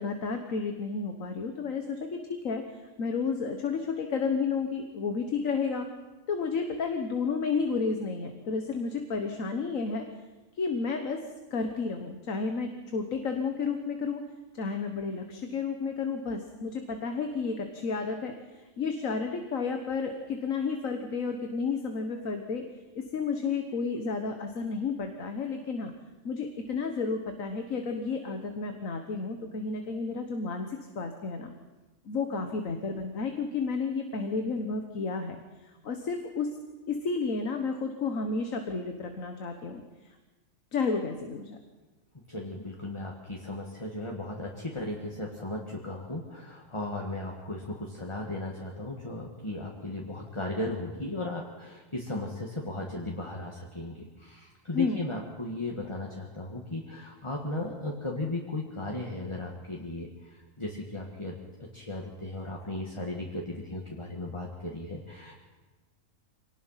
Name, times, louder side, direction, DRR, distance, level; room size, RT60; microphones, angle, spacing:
voice 1, 0.0-5.9 6.3-10.1 10.5-11.2 11.5-14.2 14.5-22.6 22.9-25.9 26.2-31.5 32.0-36.5 36.9-40.2 40.7-41.6 54.7-55.0, left 4 dB, 90° left, 5 dB, 1.8 m, -32 dB
voice 2, 42.3-60.1 60.6-65.4, left 2 dB, 20° left, -1 dB, 2.0 m, -36 dB
25.5 x 19.0 x 5.8 m, 1.2 s
omnidirectional pair, 1.3 m